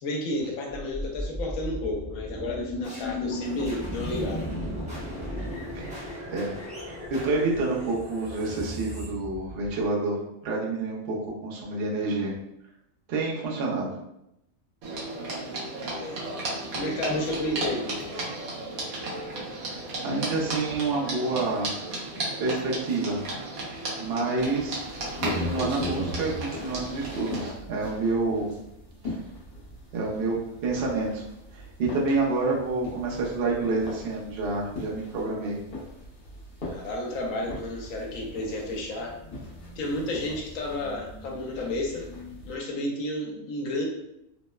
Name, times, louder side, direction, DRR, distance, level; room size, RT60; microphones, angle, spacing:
voice 1, 0.0-4.5 15.9-16.2 16.7-17.9 36.6-39.1 39.8-42.1 42.5-43.8, left 1 dB, 75° left, 0 dB, 1.0 m, -31 dB
sound 1, 0.7-9.8, equal, 5° right, 0.6 m, -35 dB
voice 2, 5.7-6.5 6.9-10.2 10.4-11.2 11.4-12.3 13.1-14.0 19.6-21.8 22.4-23.2 24.0-24.8 25.2-28.5 29.0-29.2 29.9-31.2 31.5-35.6, right 3 dB, 60° right, -3 dB, 0.7 m, -28 dB
sound 2, 14.8-27.5, right 2 dB, 85° right, 1.2 m, -34 dB
sound 3, 24.4-42.6, left 1 dB, 50° left, 0.8 m, -39 dB
3.0 x 2.0 x 2.2 m, 0.82 s
omnidirectional pair, 1.4 m